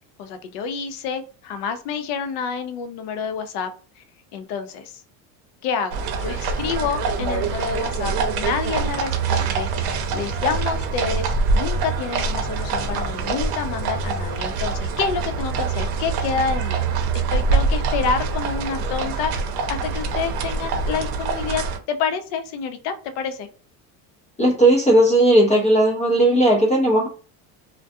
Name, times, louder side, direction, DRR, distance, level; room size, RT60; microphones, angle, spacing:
voice 1, 0.2-3.7 4.0-4.1 4.3-5.0 5.6-16.8 17.3-19.3 19.7-23.5, left 6 dB, 60° left, 8 dB, 0.6 m, -28 dB
sound 1, 5.9-21.8, right 4 dB, 60° right, 0.8 m, -24 dB
voice 2, 24.4-27.1, right 1 dB, 15° left, -1 dB, 0.5 m, -16 dB
2.3 x 2.2 x 2.6 m, 0.39 s
supercardioid pair, 110°, 46 cm